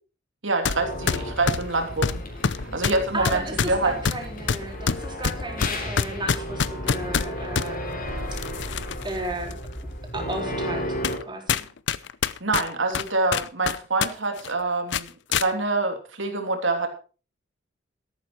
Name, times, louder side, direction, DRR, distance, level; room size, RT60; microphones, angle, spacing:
voice 1, 0.4-2.2 2.5-3.9 12.4-16.9, right 3 dB, 75° right, 5 dB, 3.0 m, -26 dB
sound 1, 0.6-0.8 1.1-7.7 8.3-9.1 9.5-9.6 10.3-10.4 11.0-11.2 11.5-14.1 14.4-14.5 14.9-15.5, left 6 dB, 65° left, 0.6 m, -26 dB
sound 2, 0.7-11.2, equal, 45° left, 3.6 m, -33 dB
voice 2, 3.1-8.0 9.0-9.6 10.1-10.9 11.3-11.7, right 2 dB, 25° right, 2 dB, 3.9 m, -34 dB
13.5 x 11.5 x 4.5 m, 0.35 s
head